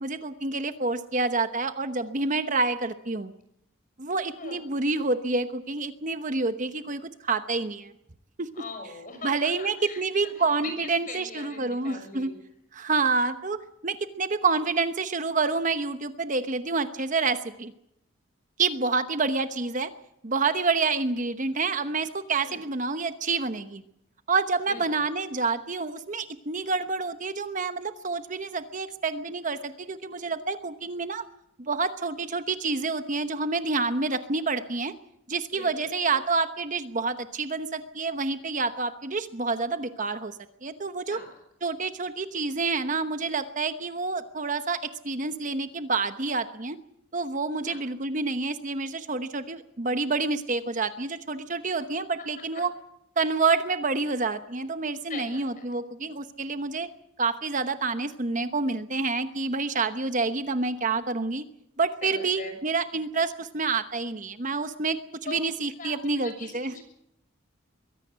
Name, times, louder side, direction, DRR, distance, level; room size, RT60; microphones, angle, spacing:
voice 1, 0.0-3.3 4.0-7.9 8.4-8.5 9.2-12.3 12.7-17.7 18.6-19.9 20.2-23.8 24.3-31.2 31.6-34.9 35.3-40.3 40.6-41.2 41.6-46.8 47.1-52.7 53.2-56.9 57.2-61.4 61.8-66.7, right 4 dB, 40° right, 10 dB, 1.0 m, -28 dB
voice 2, 8.5-12.4 22.4-22.6 24.7-25.0 35.5-35.9 41.1-41.3 47.6-47.8 52.2-52.3 52.5-52.6 55.0-55.7 62.0-62.5 65.2-65.4 65.8-66.8, left 3 dB, 40° left, 6 dB, 6.5 m, -41 dB
22.5 x 16.5 x 8.1 m, 0.76 s
head